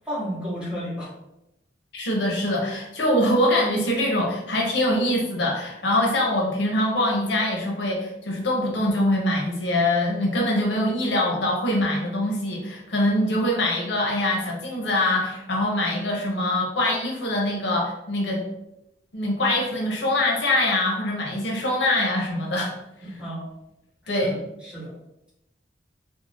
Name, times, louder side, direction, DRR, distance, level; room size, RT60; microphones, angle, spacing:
voice 1, 0.0-1.1 23.2-23.5 24.0-24.3 24.6-24.9, equal, 5° right, -8 dB, 0.9 m, -32 dB
voice 2, 1.9-18.5 19.1-22.7 23.1-23.2 24.1-24.4, left 1 dB, 70° left, -1 dB, 0.7 m, -23 dB
2.5 x 2.0 x 3.2 m, 0.88 s
head